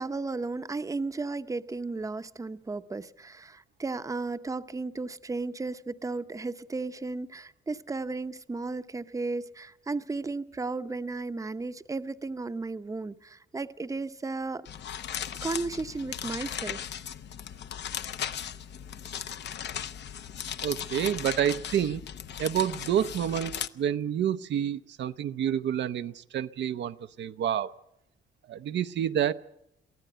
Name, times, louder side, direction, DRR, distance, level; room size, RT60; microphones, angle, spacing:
voice 1, 0.0-14.7 15.4-16.8, right 3 dB, 15° right, 0.8 m, -34 dB
sound 1, 14.7-23.7, left 9 dB, 60° left, 0.8 m, -37 dB
voice 2, 20.6-22.0 22.4-27.7 28.5-29.3, right 10 dB, 65° right, 0.7 m, -28 dB
23.0 x 15.0 x 7.9 m
cardioid pair, 90°, 20 cm